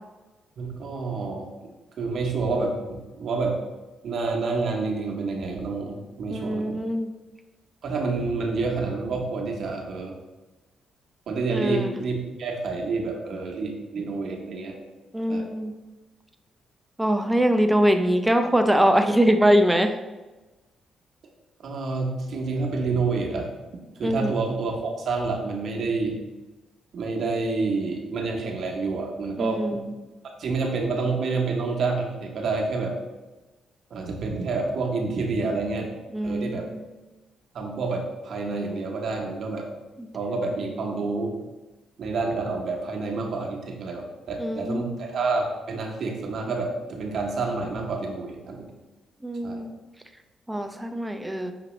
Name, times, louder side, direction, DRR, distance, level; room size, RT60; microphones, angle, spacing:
voice 1, 0.6-1.5 2.0-3.5 4.0-6.8 7.8-10.1 11.3-14.8 15.3-15.5 21.6-23.5 24.0-26.2 26.9-29.6 30.2-32.9 33.9-35.9 36.2-36.6 37.5-39.6 40.1-41.3 42.0-48.7 49.4-49.6, right 3 dB, 65° right, 0 dB, 1.0 m, -28 dB
voice 2, 6.3-7.1 11.5-11.9 15.1-15.7 17.0-19.9 24.0-24.4 29.4-29.8 36.1-36.8 44.4-45.0 49.2-49.7 50.5-51.5, equal, 10° right, 6 dB, 0.5 m, -23 dB
6.0 x 2.9 x 3.0 m, 1.1 s
supercardioid pair, 60°, 0 cm